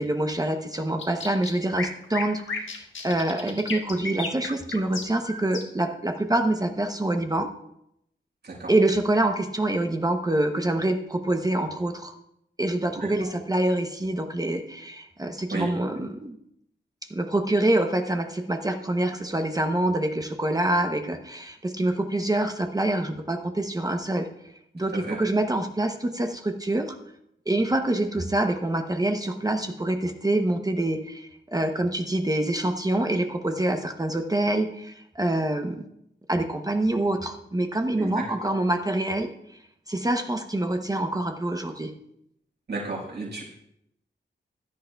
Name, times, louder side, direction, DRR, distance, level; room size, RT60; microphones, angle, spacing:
voice 1, 0.0-7.5 8.7-12.1 12.6-16.4 17.1-24.3 24.7-27.0 27.5-35.8 36.3-39.3 39.9-41.9, right 1 dB, 20° right, 5 dB, 0.7 m, -26 dB
sound 1, 1.0-5.9, left 3 dB, 75° left, 1.4 m, -34 dB
voice 2, 38.0-38.5 42.7-43.4, right 3 dB, 60° right, -3 dB, 5.0 m, -33 dB
16.0 x 11.0 x 2.3 m, 0.78 s
wide cardioid pair, 125°, 20 cm